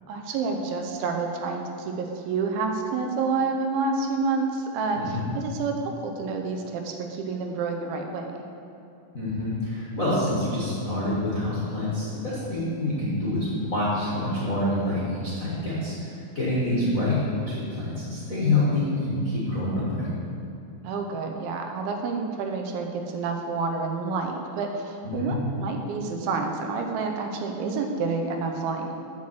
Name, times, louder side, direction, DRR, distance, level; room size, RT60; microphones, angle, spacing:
voice 1, 0.1-8.4 16.7-17.1 20.8-28.9, right 4 dB, 80° right, 3 dB, 2.6 m, -29 dB
voice 2, 9.1-17.1 17.5-20.1 25.0-25.3, left 1 dB, 50° left, -9 dB, 1.0 m, -27 dB
7.5 x 5.9 x 7.5 m, 2.8 s
omnidirectional pair, 4.4 m